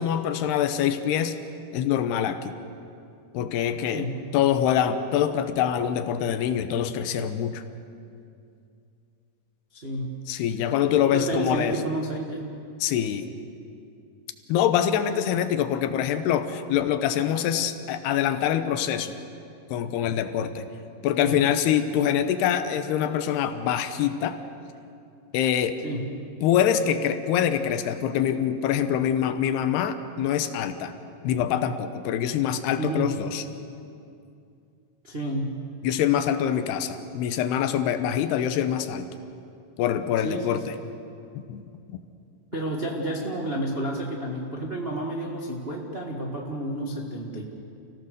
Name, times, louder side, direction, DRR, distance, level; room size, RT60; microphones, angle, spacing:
voice 1, 0.0-1.4 1.7-2.6 3.3-7.6 10.3-11.8 12.8-13.3 14.5-19.2 19.7-20.7 21.0-24.4 25.3-25.8 26.4-30.9 31.2-33.4 35.8-39.1 39.8-40.8 41.4-41.6 41.9-42.0, left 9 dB, 85° left, 9 dB, 3.1 m, -25 dB
voice 2, 9.7-10.1 11.1-12.4 21.2-21.4 25.8-26.1 32.8-33.1 35.0-35.5 40.2-40.6 42.5-47.4, right 1 dB, 60° right, -2 dB, 0.6 m, -30 dB
30.0 x 16.5 x 6.6 m, 2.5 s
omnidirectional pair, 4.6 m